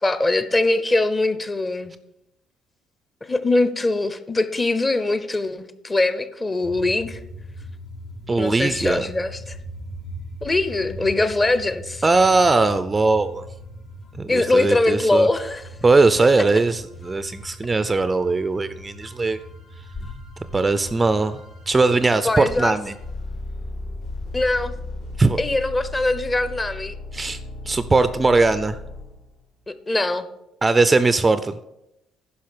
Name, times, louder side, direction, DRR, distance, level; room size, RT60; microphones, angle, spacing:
voice 1, 0.0-1.9 3.2-7.2 8.4-9.6 10.4-12.0 14.3-15.6 22.2-22.8 24.3-24.7 25.4-26.9 29.7-30.3, left 2 dB, 20° left, 12 dB, 0.7 m, -22 dB
sound 1, 6.6-24.5, equal, 60° left, 2.4 m, -40 dB
voice 2, 8.3-9.0 12.0-13.4 14.1-15.3 15.8-19.4 20.5-21.4 21.7-22.9 25.2-25.4 27.1-27.4 27.7-28.8 30.6-31.6, right 3 dB, 20° right, 13 dB, 0.4 m, -19 dB
sound 2, 13.2-13.3 14.1-14.2 14.4-14.5 15.0-29.4, left 2 dB, 80° left, 4.2 m, -38 dB
10.5 x 5.7 x 6.6 m, 0.86 s
cardioid pair, 130°, 0 cm